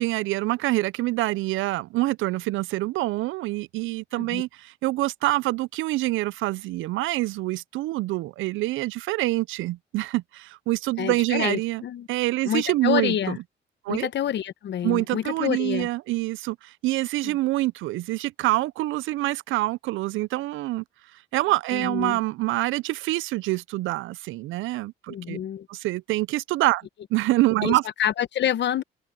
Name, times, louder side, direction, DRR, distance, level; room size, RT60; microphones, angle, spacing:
voice 1, 0.0-11.8 12.1-13.4 13.8-14.1 14.8-20.8 21.3-25.4 25.7-26.8 27.1-27.8, right 18 dB, 85° right, 0.4 m, -26 dB
voice 2, 11.0-12.1 12.4-13.4 13.9-15.9 17.2-17.4 21.7-22.2 25.1-25.7 27.6-28.8, left 10 dB, 60° left, 1.0 m, -27 dB
cardioid pair, 90°, 20 cm